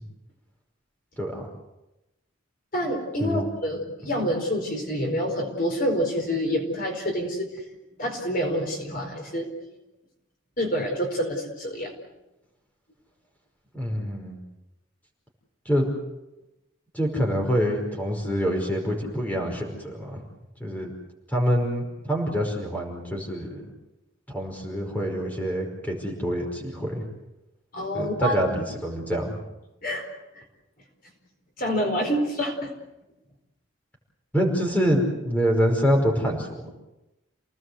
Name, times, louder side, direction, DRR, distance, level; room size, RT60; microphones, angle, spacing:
voice 1, 1.2-1.5 3.2-3.4 13.7-14.4 15.7-15.9 16.9-20.2 20.6-20.9 21.3-23.7 24.3-27.1 27.9-29.4 34.3-36.7, equal, 10° left, 1 dB, 5.2 m, -26 dB
voice 2, 2.7-7.5 8.0-9.5 10.6-11.9 27.7-28.4 29.8-30.1 31.6-32.7, equal, 45° left, 2 dB, 4.6 m, -27 dB
29.5 x 19.0 x 8.1 m, 0.96 s
head